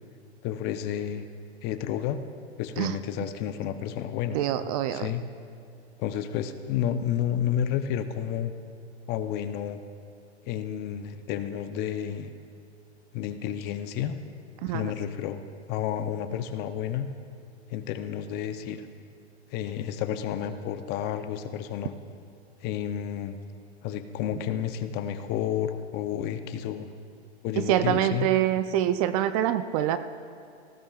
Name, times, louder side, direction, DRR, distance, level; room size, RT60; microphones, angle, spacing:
voice 1, 0.4-1.3 1.6-2.2 2.6-4.4 4.9-5.2 6.0-8.5 9.1-9.8 10.4-12.3 13.1-14.2 14.7-15.4 15.7-17.1 17.7-18.8 19.5-21.9 22.6-23.4 23.8-26.9 27.4-28.3, left 9 dB, 30° left, 10 dB, 0.6 m, -31 dB
voice 2, 4.3-5.1 14.6-14.9 27.6-30.0, right 12 dB, 35° right, 11 dB, 0.4 m, -25 dB
19.0 x 16.0 x 2.4 m, 2.4 s
hypercardioid pair, 120°, 34 cm